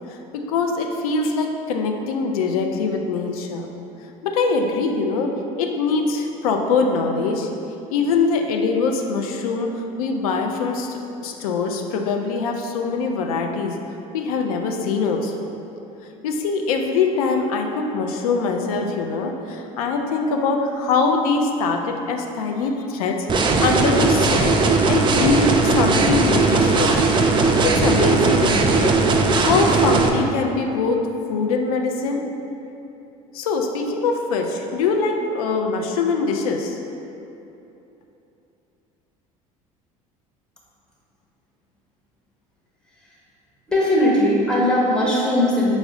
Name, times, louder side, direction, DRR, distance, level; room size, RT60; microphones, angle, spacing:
voice 1, 0.1-3.7 4.2-7.5 7.9-13.8 14.1-15.3 16.2-27.0 27.4-29.0 29.4-31.0 31.3-32.2 33.3-36.8, left 4 dB, 80° left, 3 dB, 0.4 m, -23 dB
sound 1, 23.3-30.1, right 3 dB, 25° right, 0.3 m, -18 dB
voice 2, 43.7-45.8, left 1 dB, 5° left, -5 dB, 0.8 m, -19 dB
4.9 x 2.0 x 3.6 m, 2.9 s
hypercardioid pair, 70°, 18 cm